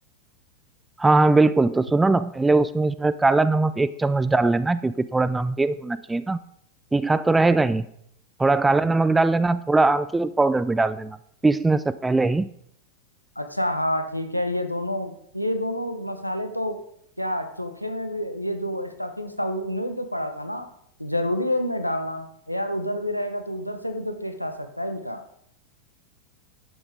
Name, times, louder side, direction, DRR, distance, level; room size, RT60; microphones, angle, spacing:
voice 1, 1.0-6.4 6.9-7.9 8.4-11.2 11.4-12.4, right 3 dB, 10° right, 14 dB, 0.4 m, -20 dB
voice 2, 13.4-16.8 17.2-20.7 21.0-25.2, left 1 dB, 90° left, 8 dB, 1.0 m, -28 dB
10.5 x 8.0 x 5.1 m, 0.70 s
figure-of-eight pair, 90°, 0 cm